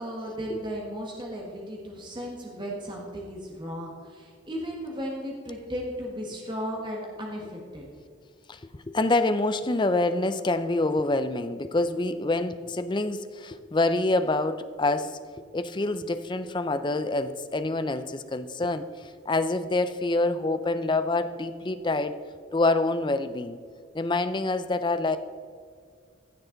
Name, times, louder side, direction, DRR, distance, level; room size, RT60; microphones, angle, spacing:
voice 1, 0.0-7.8, equal, 25° right, -1 dB, 1.6 m, -35 dB
voice 2, 8.5-15.2 15.5-22.1 22.5-23.6 23.9-25.2, left 2 dB, 25° left, 11 dB, 0.5 m, -26 dB
15.5 x 6.7 x 3.9 m, 2.1 s
head